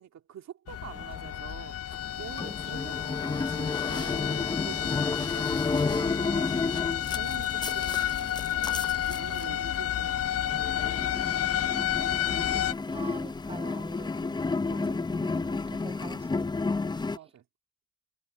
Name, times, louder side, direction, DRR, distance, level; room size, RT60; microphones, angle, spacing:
voice 1, 0.0-6.6 7.1-11.0 14.7-15.0 17.1-17.4, right 9 dB, 65° right, 2.5 m, -46 dB
sound 1, 0.7-12.7, left 12 dB, 55° left, 0.7 m, -31 dB
voice 2, 0.9-1.7 2.6-2.8 7.5-7.6 11.7-14.4 14.7-16.5, right 4 dB, 20° right, 0.7 m, -47 dB
sound 2, 1.9-17.2, left 3 dB, 15° left, 0.6 m, -32 dB
cardioid pair, 90°, 30 cm